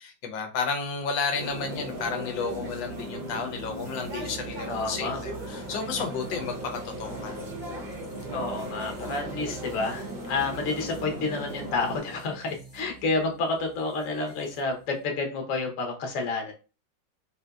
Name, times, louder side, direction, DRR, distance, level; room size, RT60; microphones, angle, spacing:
voice 1, 0.0-7.4, left 5 dB, 90° left, 1.4 m, -32 dB
sound 1, 1.3-12.0, right 1 dB, 55° right, 0.5 m, -38 dB
sound 2, 1.5-15.1, right 2 dB, 35° left, 0.6 m, -43 dB
voice 2, 4.7-5.2 8.3-16.5, left 3 dB, 55° left, 1.0 m, -30 dB
3.8 x 2.6 x 2.2 m
omnidirectional pair, 2.0 m